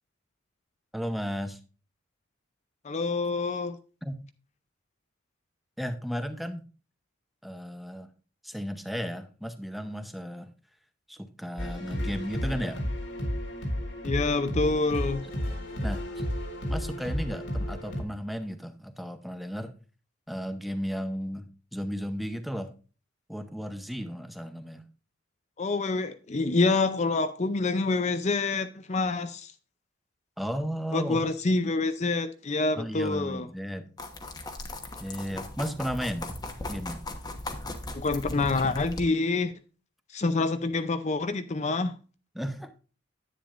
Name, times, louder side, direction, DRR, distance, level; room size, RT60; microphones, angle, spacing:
voice 1, 0.9-1.6 4.0-4.1 5.8-6.6 7.4-8.1 8.4-10.5 11.1-12.8 15.8-16.0 16.7-19.7 20.3-22.7 23.3-24.8 30.4-31.2 32.8-33.9 35.0-36.3 36.7-37.0 42.3-42.7, equal, ahead, 0.7 m, -34 dB
voice 2, 2.8-3.8 14.0-15.2 25.6-29.5 30.9-33.5 37.9-39.5 40.1-41.9, left 3 dB, 35° left, 0.5 m, -27 dB
sound 1, 11.6-18.0, equal, 70° left, 2.2 m, -32 dB
sound 2, 34.0-39.0, left 1 dB, 20° left, 1.1 m, -38 dB
10.0 x 9.1 x 2.5 m
head